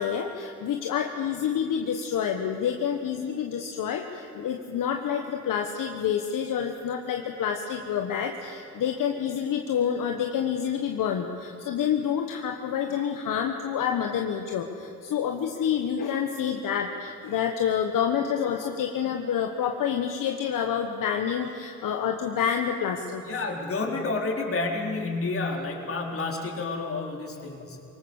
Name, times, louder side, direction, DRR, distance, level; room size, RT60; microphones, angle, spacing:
voice 1, 0.0-23.2, left 8 dB, 65° left, 4 dB, 1.4 m, -28 dB
voice 2, 23.2-27.8, left 3 dB, 40° left, 0 dB, 4.2 m, -30 dB
23.5 x 18.5 x 7.2 m, 2.8 s
supercardioid pair, 75°, 34 cm